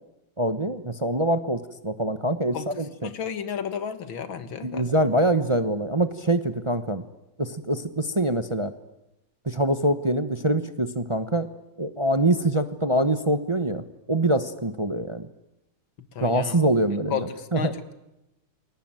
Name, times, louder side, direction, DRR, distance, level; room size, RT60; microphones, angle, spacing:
voice 1, 0.4-3.1 4.6-7.0 7.4-8.7 9.5-11.5 11.8-13.8 14.1-15.3 16.2-17.8, right 1 dB, 25° right, 11 dB, 0.6 m, -24 dB
voice 2, 3.0-4.9 16.2-16.6 17.1-17.9, left 7 dB, 70° left, 11 dB, 2.4 m, -32 dB
29.0 x 22.0 x 9.0 m, 0.91 s
omnidirectional pair, 2.3 m